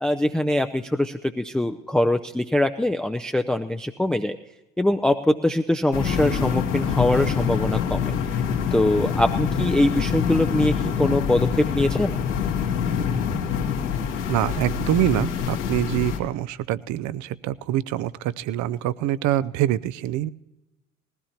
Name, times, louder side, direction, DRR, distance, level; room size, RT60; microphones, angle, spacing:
voice 1, 0.0-4.4 4.8-8.4 8.7-12.2, left 1 dB, ahead, 6 dB, 0.5 m, -23 dB
sound 1, 5.9-16.2, left 7 dB, 80° left, 1.9 m, -25 dB
voice 2, 14.3-20.3, right 13 dB, 50° right, 18 dB, 0.5 m, -25 dB
20.0 x 15.5 x 2.9 m, 1.0 s
hypercardioid pair, 55°, 37 cm